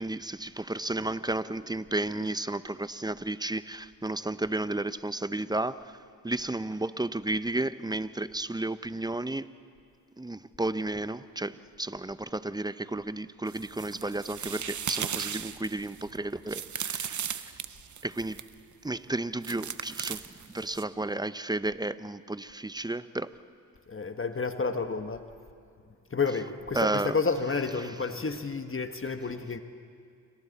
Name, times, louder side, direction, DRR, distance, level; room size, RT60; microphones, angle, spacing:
voice 1, 0.0-5.9 6.2-9.5 10.2-17.3 18.0-18.4 18.8-20.2 20.5-23.3 26.7-27.2, right 2 dB, 10° right, 14 dB, 0.7 m, -32 dB
sound 1, 13.5-18.5 19.4-20.8, right 8 dB, 45° right, 0.9 m, -37 dB
voice 2, 23.9-25.2 26.1-29.6, left 4 dB, 30° left, 7 dB, 1.4 m, -30 dB
28.0 x 25.0 x 4.2 m, 2.4 s
supercardioid pair, 50°, 40 cm